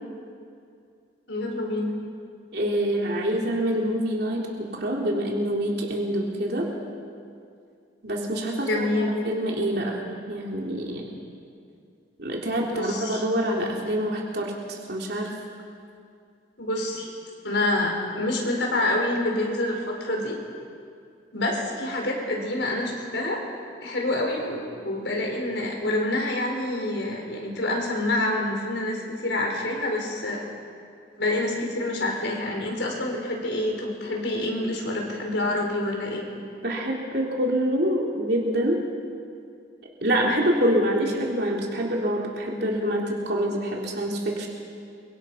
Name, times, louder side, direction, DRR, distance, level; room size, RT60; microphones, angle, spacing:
voice 1, 1.3-1.9 8.6-9.1 12.7-13.2 16.6-17.1 17.4-20.4 21.3-23.4 23.8-30.4 31.2-36.2, left 1 dB, 85° left, 1 dB, 4.9 m, -27 dB
voice 2, 2.5-6.7 8.0-11.1 12.2-15.4 36.6-38.9 40.0-44.5, equal, 60° right, -2 dB, 3.5 m, -26 dB
29.5 x 24.5 x 5.7 m, 2.4 s
head